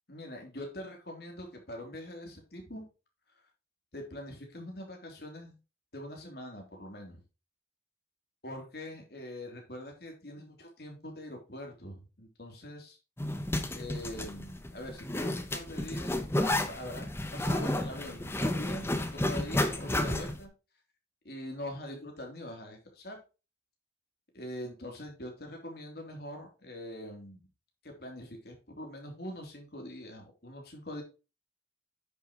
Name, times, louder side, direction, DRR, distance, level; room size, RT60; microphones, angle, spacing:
voice 1, 0.1-2.8 3.9-5.6 5.9-7.2 8.4-13.0 13.7-16.2 16.7-20.5 21.2-23.2 24.3-27.5 27.8-31.0, left 1 dB, 60° left, 2 dB, 3.4 m, -43 dB
Zipper (clothing), 13.2-20.4, left 1 dB, 15° left, 1.0 m, -32 dB
10.0 x 7.0 x 3.1 m, 0.31 s
head